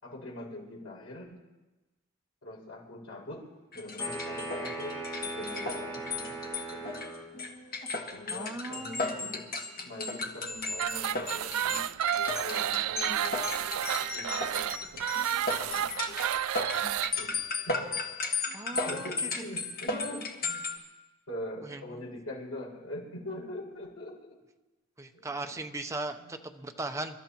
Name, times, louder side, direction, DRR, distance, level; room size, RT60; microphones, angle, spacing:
voice 1, 0.0-1.4 2.4-3.4 3.7-6.4 6.7-6.9 8.1-9.4 9.7-11.9 12.4-15.0 15.6-15.9 17.2-17.3 17.7-17.9 18.8-20.6 21.3-24.2 25.1-25.6 26.2-26.4, left 1 dB, 80° left, -2 dB, 6.5 m, -43 dB
sound 1, 3.7-20.8, left 3 dB, 45° left, 1.6 m, -35 dB
sound 2, 4.0-7.3, right 3 dB, 15° left, 2.5 m, -39 dB
voice 2, 8.3-9.2 18.5-19.1 21.6-22.0 25.0-27.2, right 2 dB, 15° right, 5 dB, 0.7 m, -38 dB
sound 3, 10.7-17.1, right 10 dB, 85° right, 0.4 m, -31 dB
29.0 x 13.5 x 3.0 m, 1.2 s
head